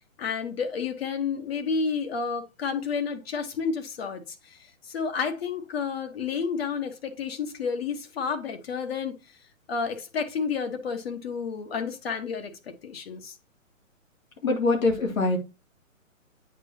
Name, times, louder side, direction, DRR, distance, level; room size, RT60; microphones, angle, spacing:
voice 1, 0.2-9.1 9.7-12.5 12.8-13.3, left 5 dB, 50° left, 1.4 m, -30 dB
voice 2, 14.4-15.4, left 3 dB, 85° left, 3.1 m, -23 dB
8.1 x 5.1 x 2.8 m
hypercardioid pair, 155°, 40 cm